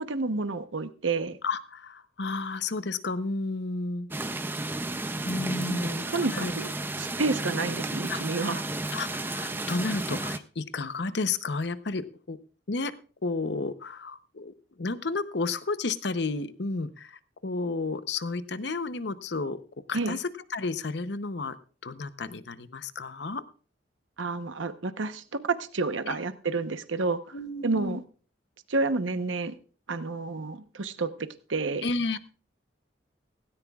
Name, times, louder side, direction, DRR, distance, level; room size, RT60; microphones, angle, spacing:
voice 1, 0.0-1.4 5.7-6.7 7.0-8.6 19.9-20.2 24.2-27.3 27.6-28.0 28.7-29.6 29.9-31.1 31.5-31.8, right 3 dB, 85° right, 10 dB, 1.0 m, -30 dB
voice 2, 1.4-4.1 5.2-6.1 6.3-6.5 8.1-8.5 8.9-12.4 12.7-12.9 13.2-19.6 19.9-21.6 21.8-23.4 27.3-28.0 31.8-32.2, left 3 dB, 60° left, 12 dB, 0.8 m, -32 dB
sound 1, 4.1-10.4, right 2 dB, 10° right, 0.5 m, -33 dB
17.0 x 17.0 x 2.4 m, 0.39 s
head